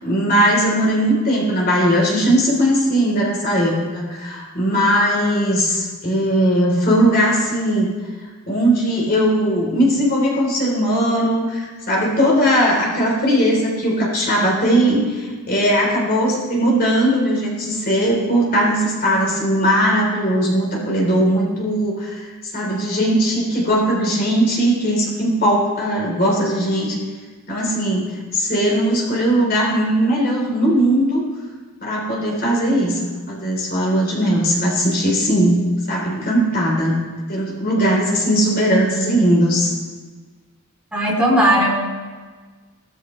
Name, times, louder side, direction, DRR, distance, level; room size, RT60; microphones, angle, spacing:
voice 1, 0.0-7.9 8.5-22.3 22.5-27.0 27.5-31.2 31.8-35.6 35.9-37.0 37.3-39.7, equal, 45° left, -3 dB, 3.7 m, -19 dB
voice 2, 40.9-41.7, equal, 5° right, -5 dB, 3.5 m, -16 dB
18.0 x 13.5 x 3.3 m, 1.4 s
head